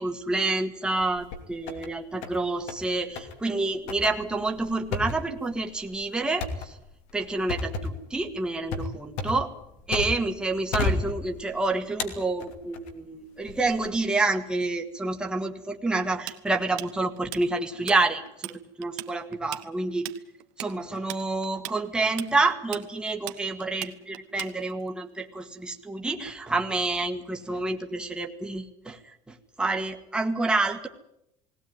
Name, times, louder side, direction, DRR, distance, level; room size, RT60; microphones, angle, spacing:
voice 1, 0.0-6.7 7.1-9.5 9.9-18.5 18.8-20.1 20.6-29.0 29.3-30.9, right 2 dB, 5° right, 3 dB, 1.6 m, -28 dB
sound 1, 1.0-1.9 2.2-2.9 3.2-3.4 3.9-10.4 10.7-11.6 12.0-12.9 13.5-13.9, left 3 dB, 70° left, 2.8 m, -33 dB
Tools, 16.3-18.0 18.3-18.6 18.8-24.9, right 20 dB, 80° right, 1.2 m, -38 dB
19.0 x 18.0 x 9.5 m, 0.81 s
cardioid pair, 155°, 13 cm